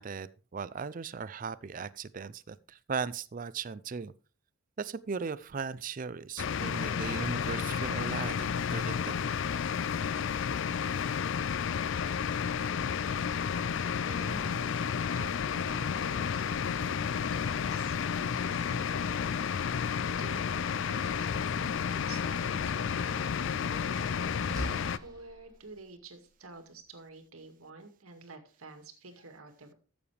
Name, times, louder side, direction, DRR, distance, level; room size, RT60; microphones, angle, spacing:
voice 1, 0.0-4.1 4.8-9.3, right 5 dB, 40° right, 0.4 m, -38 dB
sound 1, 6.4-25.0, left 7 dB, 60° left, 0.4 m, -31 dB
voice 2, 14.0-14.8 15.2-19.3 20.2-21.8 22.1-24.6 25.0-29.7, right 3 dB, 85° right, 2.1 m, -50 dB
Slam, 22.0-25.8, equal, 20° right, 2.3 m, -46 dB
14.0 x 7.1 x 3.3 m
head